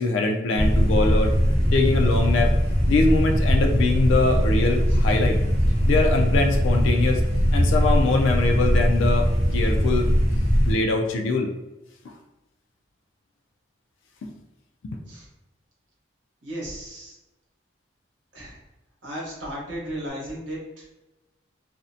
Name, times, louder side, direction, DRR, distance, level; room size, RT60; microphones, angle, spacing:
voice 1, 0.0-1.3 1.7-2.5 2.9-5.4 5.9-7.2 7.5-10.1 10.7-11.5 12.1-12.2 14.2-14.3 14.8-15.0, left 3 dB, 85° left, 3 dB, 0.3 m, -23 dB
sound 1, 0.6-10.7, equal, 35° right, 0.7 m, -21 dB
voice 2, 16.4-17.2 18.3-18.6 19.0-20.8, equal, 80° right, -4 dB, 1.0 m, -35 dB
2.5 x 2.0 x 2.6 m, 1.0 s
head